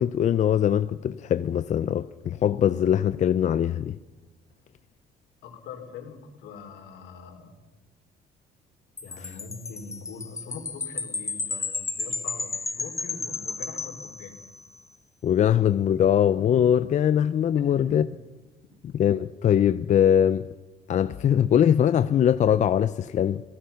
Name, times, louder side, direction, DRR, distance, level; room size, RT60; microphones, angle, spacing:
voice 1, 0.0-4.0 9.2-9.3 15.2-18.1 19.0-20.5 20.9-23.4, left 9 dB, 45° left, 0.6 m, -22 dB
voice 2, 5.4-7.5 9.0-14.4 17.7-18.0, left 5 dB, 80° left, 4.3 m, -43 dB
Wind chime, 9.0-14.7, left 4 dB, 15° left, 0.9 m, -33 dB
27.0 x 17.5 x 5.8 m
cardioid pair, 110°, 17 cm